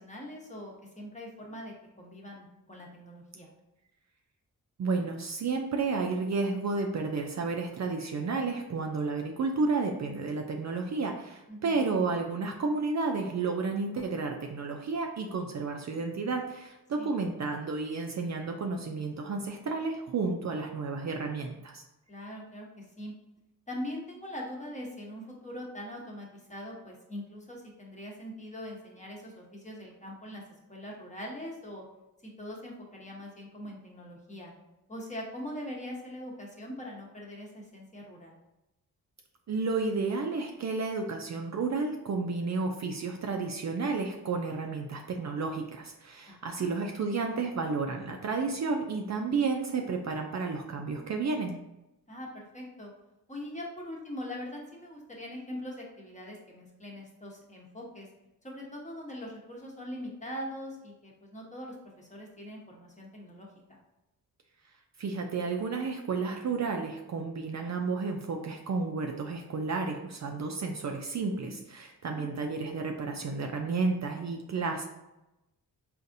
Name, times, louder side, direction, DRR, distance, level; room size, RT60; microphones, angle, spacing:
voice 1, 0.0-3.5 11.5-11.9 17.0-17.1 22.1-23.1 23.7-30.4 30.7-31.8 32.2-34.5 34.9-38.4 46.3-46.7 52.1-52.9 53.3-58.1 58.4-63.8 72.0-72.3, left 1 dB, 20° left, -2 dB, 0.9 m, -42 dB
voice 2, 4.8-21.8 39.5-51.6 65.0-74.9, right 4 dB, 45° right, 3 dB, 0.4 m, -31 dB
4.0 x 2.5 x 2.6 m, 0.92 s
cardioid pair, 65°, 38 cm